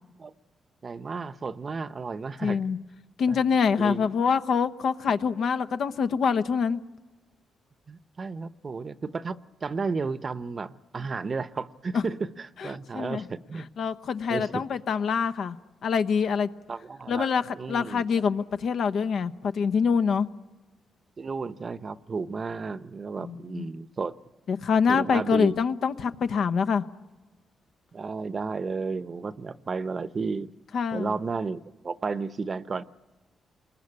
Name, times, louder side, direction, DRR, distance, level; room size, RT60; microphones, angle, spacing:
voice 1, 0.8-2.6 3.3-3.4 3.8-4.1 7.9-13.7 14.3-14.6 16.7-18.2 21.2-24.2 24.9-25.6 27.9-30.5 30.9-32.8, right 4 dB, 40° right, 14 dB, 0.8 m, -33 dB
voice 2, 2.4-2.8 3.2-6.8 11.9-12.0 12.6-13.2 13.8-15.6 15.8-16.5 17.1-17.4 17.7-20.3 23.2-23.7 24.5-26.8 30.7-31.2, left 6 dB, 70° left, 10 dB, 1.0 m, -25 dB
27.5 x 22.0 x 9.8 m, 1.2 s
cardioid pair, 80°, 0 cm